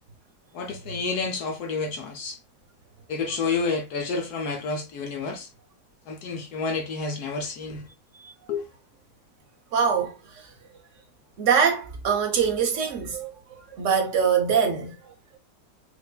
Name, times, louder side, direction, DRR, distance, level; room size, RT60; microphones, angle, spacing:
voice 1, 0.5-2.4 3.1-5.5 6.1-7.9 8.5-8.7, left 4 dB, 70° left, 1.0 m, -29 dB
voice 2, 9.7-10.4 11.4-15.0, right 6 dB, 65° right, 0.8 m, -24 dB
4.5 x 2.5 x 2.3 m
omnidirectional pair, 2.0 m